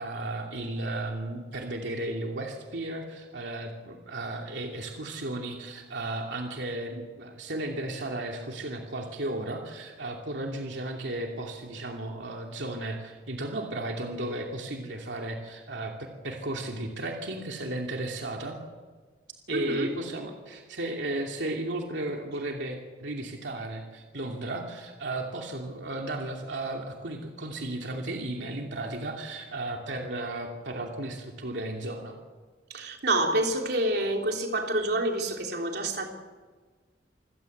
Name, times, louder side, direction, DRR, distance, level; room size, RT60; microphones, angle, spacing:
voice 1, 0.0-18.6 19.5-32.2, right 2 dB, 90° right, 1 dB, 2.7 m, -34 dB
voice 2, 19.5-19.9 32.7-36.1, right 1 dB, 65° right, 2 dB, 3.5 m, -27 dB
27.0 x 16.5 x 8.0 m, 1.4 s
head